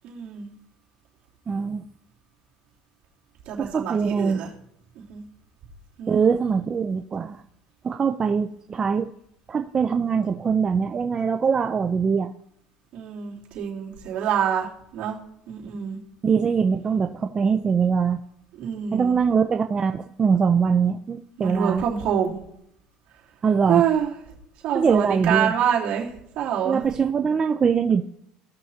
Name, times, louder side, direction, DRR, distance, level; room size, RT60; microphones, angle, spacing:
voice 1, 0.0-0.5 3.4-4.5 4.9-5.2 6.0-6.2 12.9-15.2 15.5-16.0 18.6-19.1 21.4-22.4 23.7-24.1 24.6-26.8, right 8 dB, 60° right, -5 dB, 3.2 m, -26 dB
voice 2, 1.5-1.8 3.6-4.4 6.1-7.4 7.8-9.1 9.5-12.3 16.2-18.2 18.9-21.8 23.4-23.8 24.7-25.5 26.6-28.0, right 6 dB, 25° right, 5 dB, 0.5 m, -22 dB
17.0 x 6.2 x 2.9 m, 0.74 s
supercardioid pair, 120°, 3 cm